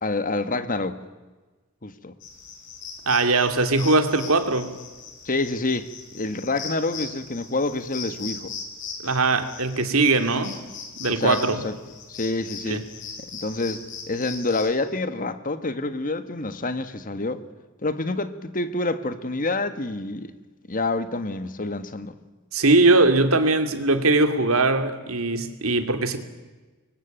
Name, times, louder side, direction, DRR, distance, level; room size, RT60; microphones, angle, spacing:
voice 1, 0.0-1.0 1.8-2.1 5.2-5.9 6.1-8.5 11.1-11.7 12.1-12.9 13.3-17.4 17.8-20.3 20.7-22.1, left 2 dB, 40° left, 1.5 m, -27 dB
sound 1, 2.2-14.7, left 5 dB, 55° left, 6.7 m, -39 dB
voice 2, 3.1-4.7 9.0-10.6 11.0-11.6 12.6-12.8 22.5-26.2, right 3 dB, 75° right, 2.6 m, -20 dB
27.0 x 23.0 x 9.1 m
head